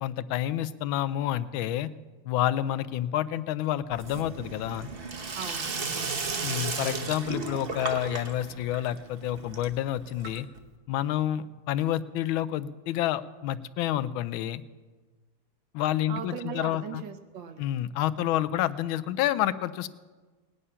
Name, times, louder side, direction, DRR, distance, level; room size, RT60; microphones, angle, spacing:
voice 1, 0.0-1.9 2.3-4.9 6.4-10.5 10.9-14.6 15.7-17.0 17.6-19.9, left 12 dB, 85° left, 15 dB, 1.4 m, -29 dB
Sink (filling or washing), 3.9-10.7, right 4 dB, 45° right, 0.8 m, -35 dB
voice 2, 5.3-6.1 16.1-17.6, right 7 dB, 70° right, 6 dB, 1.6 m, -39 dB
18.5 x 9.9 x 5.6 m, 1.3 s
omnidirectional pair, 2.2 m